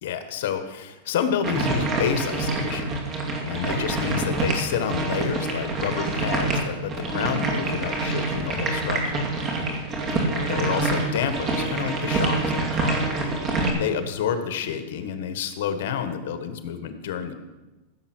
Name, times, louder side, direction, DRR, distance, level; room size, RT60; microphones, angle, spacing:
voice 1, 0.0-3.2 3.5-9.2 9.4-9.6 10.1-17.3, left 8 dB, 70° left, 8 dB, 1.4 m, -29 dB
sound 1, 1.4-13.7, right 2 dB, 30° right, 2.5 m, -26 dB
15.5 x 7.3 x 6.1 m, 1.1 s
supercardioid pair, 150°, 0 cm